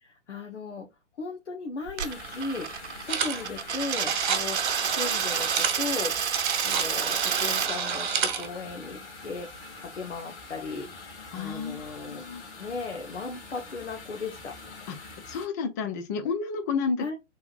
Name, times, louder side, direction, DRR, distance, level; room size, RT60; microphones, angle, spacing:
voice 1, 0.0-0.9 1.2-2.7 3.0-6.2 6.6-9.5 9.8-10.9 11.3-12.2 12.6-14.5 17.0-17.2, left 4 dB, 70° left, 1.3 m, -36 dB
Coin (dropping), 1.9-7.7, right 7 dB, 65° right, 0.8 m, -30 dB
sound 1, 2.0-15.5, left 3 dB, 50° left, 2.1 m, -45 dB
sound 2, 3.1-3.4 3.7-8.5, right 6 dB, 45° right, 1.3 m, -29 dB
voice 2, 11.3-12.4 14.9-15.0 15.3-17.1, left 5 dB, 15° left, 0.5 m, -31 dB
5.6 x 3.6 x 2.4 m
figure-of-eight pair, 130°, 36 cm